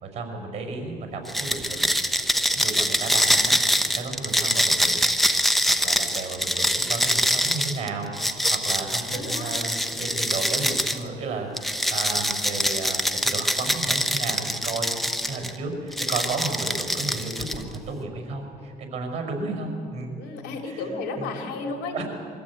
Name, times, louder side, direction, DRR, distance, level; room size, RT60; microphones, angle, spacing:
voice 1, 0.0-2.0 2.5-3.6 3.9-5.1 5.6-8.1 8.5-11.5 11.9-15.0 15.3-20.2 20.6-20.8 21.2-21.5 21.9-22.0, right 3 dB, 40° right, 3 dB, 5.6 m, -33 dB
sound 1, 1.3-11.0 11.6-15.5 15.9-17.7, equal, ahead, 1.0 m, -24 dB
voice 2, 9.1-9.5 20.2-22.0, left 3 dB, 85° left, 2 dB, 3.3 m, -33 dB
23.5 x 15.5 x 8.6 m, 2.6 s
cardioid pair, 110°, 17 cm